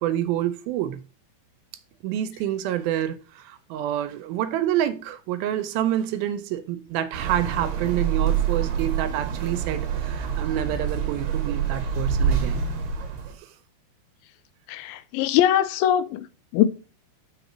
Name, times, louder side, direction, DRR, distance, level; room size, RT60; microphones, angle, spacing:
voice 1, 0.0-1.0 2.0-12.7 13.4-13.5, right 11 dB, 80° right, 2.3 m, -28 dB
sound 1, 7.1-13.3, right 7 dB, 65° right, 1.8 m, -26 dB
voice 2, 14.7-16.2 16.5-16.6, left 12 dB, 80° left, 2.3 m, -21 dB
5.9 x 4.0 x 5.9 m
omnidirectional pair, 4.4 m